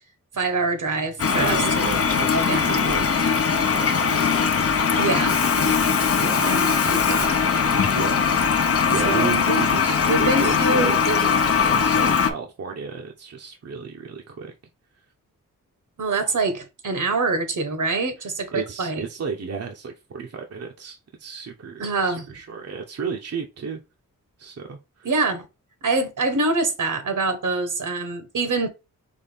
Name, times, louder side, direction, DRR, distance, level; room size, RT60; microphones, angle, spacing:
voice 1, 0.3-1.6 2.3-2.9 5.0-5.4 6.4-7.4 9.0-9.6 10.0-11.3 16.0-19.0 21.8-22.3 25.0-25.4 25.8-28.7, right 3 dB, 70° right, 1.2 m, -25 dB
Toilet flush, 1.2-12.3, left 6 dB, 45° left, 0.6 m, -20 dB
voice 2, 1.4-4.4 4.9-6.5 7.9-8.3 8.9-14.5 18.2-23.8 24.4-25.1, right 5 dB, 50° right, 0.8 m, -34 dB
4.2 x 3.2 x 3.4 m
wide cardioid pair, 90°, 32 cm